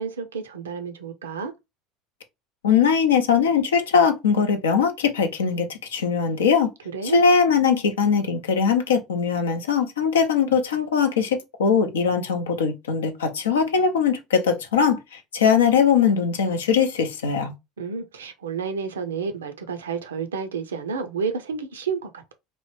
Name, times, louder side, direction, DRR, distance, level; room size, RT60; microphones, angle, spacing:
voice 1, 0.0-1.5 6.9-7.2 17.8-22.3, right 5 dB, 80° right, 0.4 m, -30 dB
voice 2, 2.6-6.7 7.1-17.5, left 6 dB, 75° left, 0.5 m, -21 dB
3.0 x 2.1 x 3.0 m
figure-of-eight pair, 70°, 0 cm